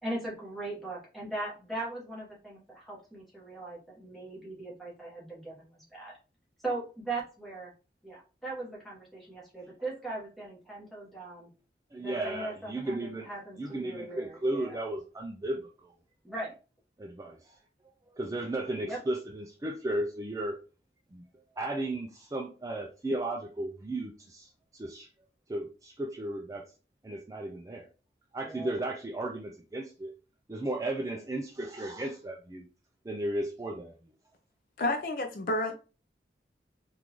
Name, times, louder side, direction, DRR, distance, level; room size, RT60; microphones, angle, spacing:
voice 1, 0.0-6.1 6.6-7.7 8.0-11.5 12.0-14.8 16.2-16.5 18.7-19.0 28.4-28.7, right 2 dB, ahead, 1.2 m, -39 dB
voice 2, 11.9-13.3 13.6-15.9 17.0-17.6 18.1-20.6 21.1-21.3 21.6-25.1 25.5-26.7 27.0-27.9 28.3-30.1 30.5-32.7 33.0-33.9, right 1 dB, 20° right, 0.3 m, -35 dB
voice 3, 34.8-35.7, left 2 dB, 50° left, 0.4 m, -30 dB
3.8 x 2.4 x 2.9 m
head